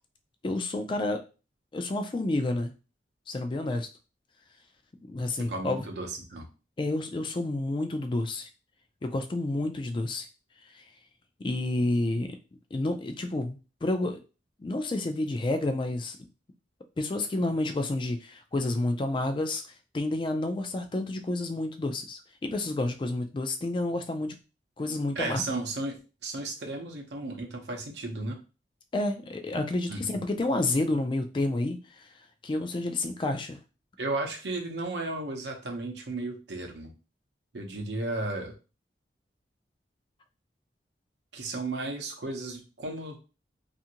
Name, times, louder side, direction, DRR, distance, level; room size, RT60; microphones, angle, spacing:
voice 1, 0.4-1.2 1.7-2.7 3.3-3.9 5.1-5.9 6.8-8.5 9.0-10.3 10.7-10.8 11.4-12.4 12.7-14.2 14.6-16.2 17.0-19.6 19.9-24.3 24.8-25.4 28.9-32.1 32.4-33.6, left 2 dB, 30° left, 7 dB, 0.3 m, -29 dB
voice 2, 5.5-6.5 25.1-28.4 29.9-30.2 34.0-36.9 37.5-38.5 41.3-43.2, right 2 dB, 75° right, 3 dB, 0.7 m, -34 dB
2.6 x 2.5 x 2.8 m, 0.32 s
head